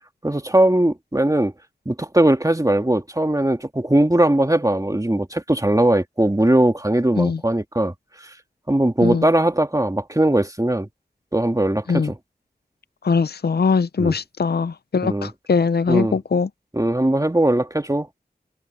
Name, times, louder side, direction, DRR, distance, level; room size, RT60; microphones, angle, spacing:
voice 1, 0.2-1.5 1.9-7.9 8.7-10.9 11.3-12.2 14.0-14.1 15.0-15.3 15.9-16.2 16.7-18.1, right 1 dB, 20° right, 1.9 m, -19 dB
voice 2, 13.0-16.5, left 5 dB, 75° left, 0.5 m, -21 dB
wide cardioid pair, 55°, 17 cm